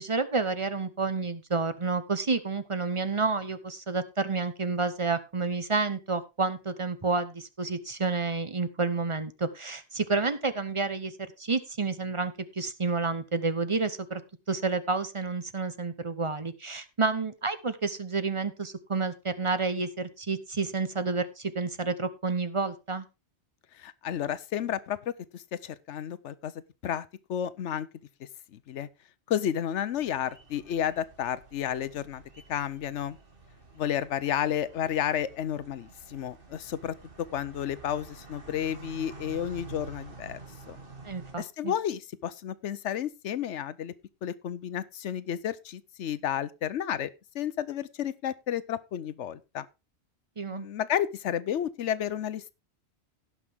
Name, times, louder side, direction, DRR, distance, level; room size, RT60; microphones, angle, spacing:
voice 1, 0.0-11.1 11.4-14.2 14.5-23.1 41.0-41.7 50.4-50.7, right 4 dB, 30° right, 0.8 m, -30 dB
voice 2, 23.8-25.0 25.3-26.5 26.8-27.9 28.2-28.9 29.3-32.2 32.5-33.2 33.7-36.9 37.3-40.4 40.7-40.8 41.4-43.9 44.2-47.1 47.3-49.7 50.5-52.5, left 10 dB, 80° left, 1.0 m, -32 dB
sound 1, 29.9-41.4, right 4 dB, 50° right, 2.2 m, -49 dB
17.5 x 5.9 x 3.5 m
omnidirectional pair, 1.2 m